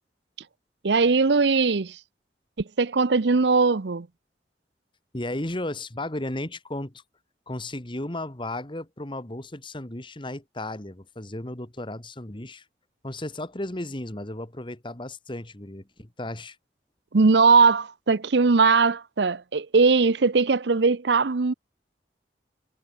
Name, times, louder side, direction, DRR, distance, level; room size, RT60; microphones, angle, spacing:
voice 1, 0.8-2.0 2.8-4.1 17.1-21.5, right 4 dB, 70° right, 0.7 m, -20 dB
voice 2, 5.1-7.0 7.5-12.7 13.0-16.6, left 1 dB, 30° left, 1.8 m, -34 dB
head